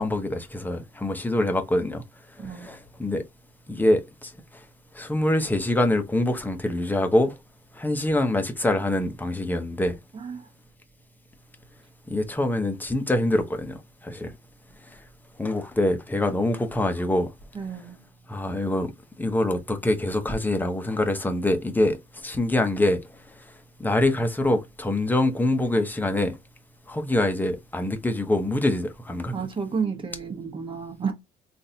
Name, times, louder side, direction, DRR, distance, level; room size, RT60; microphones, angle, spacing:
voice 1, 0.0-2.0 2.4-3.2 3.7-4.3 4.9-7.4 7.8-9.9 12.1-13.8 14.0-14.3 15.4-17.3 18.3-18.9 19.2-22.0 22.2-23.0 23.8-26.3 26.9-29.3, left 1 dB, 10° left, 0.8 m, -24 dB
voice 2, 2.4-2.7 10.1-10.4 17.5-18.0 29.3-31.1, right 6 dB, 30° right, 1.2 m, -31 dB
3.8 x 2.6 x 2.8 m
cardioid pair, 110°, 17 cm